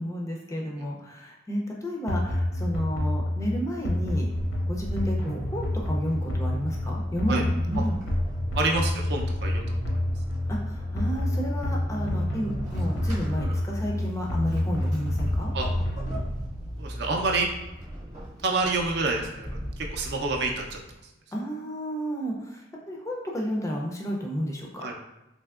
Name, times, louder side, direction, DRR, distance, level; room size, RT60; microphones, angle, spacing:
voice 1, 0.0-4.3 4.6-8.0 10.5-15.5 21.3-24.8, equal, 15° left, -1 dB, 0.3 m, -31 dB
sound 1, 2.1-16.3, left 1 dB, 85° left, 0.6 m, -28 dB
Vehicle / Accelerating revving vroom / Squeak, 3.8-21.0, equal, 35° right, 0.8 m, -38 dB
voice 2, 8.6-10.0 15.5-15.7 16.8-17.5 18.4-20.8 24.8-25.0, right 3 dB, 55° right, 1 dB, 0.4 m, -28 dB
3.4 x 2.8 x 2.3 m, 0.93 s
head